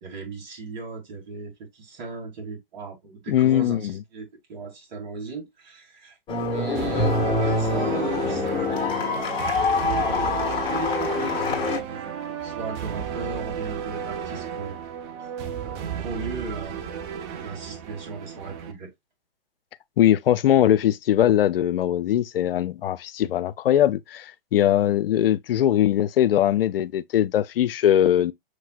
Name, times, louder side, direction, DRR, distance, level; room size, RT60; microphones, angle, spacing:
voice 1, 0.0-6.2 6.4-9.5 9.9-14.8 15.2-15.3 15.6-18.9, right 4 dB, 50° right, 2.5 m, -37 dB
voice 2, 3.3-4.0 20.0-28.3, left 11 dB, 75° left, 0.5 m, -21 dB
sound 1, 6.3-11.8, left 3 dB, 15° left, 1.6 m, -25 dB
sound 2, 6.7-18.7, right 8 dB, 30° right, 0.7 m, -33 dB
6.4 x 3.1 x 2.3 m
hypercardioid pair, 130°, 29 cm